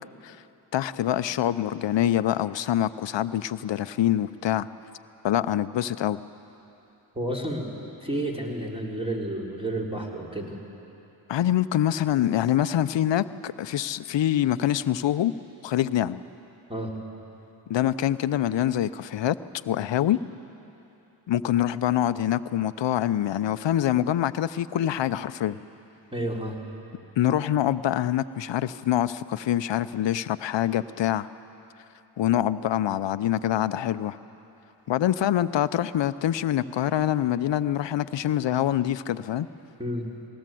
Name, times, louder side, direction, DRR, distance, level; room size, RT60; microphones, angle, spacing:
voice 1, 0.7-4.7 5.2-6.2 11.3-15.3 15.6-16.2 17.7-19.4 19.6-20.2 21.3-25.6 27.2-31.3 32.2-34.2 34.9-39.5, left 11 dB, 65° left, 15 dB, 0.7 m, -25 dB
voice 2, 7.1-7.7 8.0-10.6 16.7-17.0 26.1-26.6 39.8-40.1, right 1 dB, 10° right, -2 dB, 4.0 m, -30 dB
20.5 x 18.0 x 7.7 m, 3.0 s
cardioid pair, 50°, 47 cm